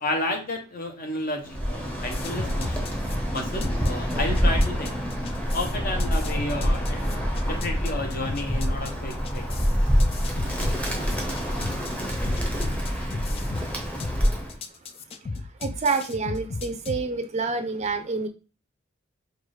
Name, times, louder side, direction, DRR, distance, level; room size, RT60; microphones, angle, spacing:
voice 1, 0.0-3.0 3.3-5.0 5.5-7.0 7.5-9.5, left 1 dB, 50° left, 3 dB, 0.9 m, -31 dB
Bird, 1.4-14.6, equal, 5° left, 0.9 m, -26 dB
sound 1, 2.1-17.0, left 3 dB, 30° left, 0.3 m, -35 dB
voice 2, 15.6-18.3, right 4 dB, 35° right, 8 dB, 0.5 m, -27 dB
4.6 x 2.4 x 3.1 m, 0.33 s
head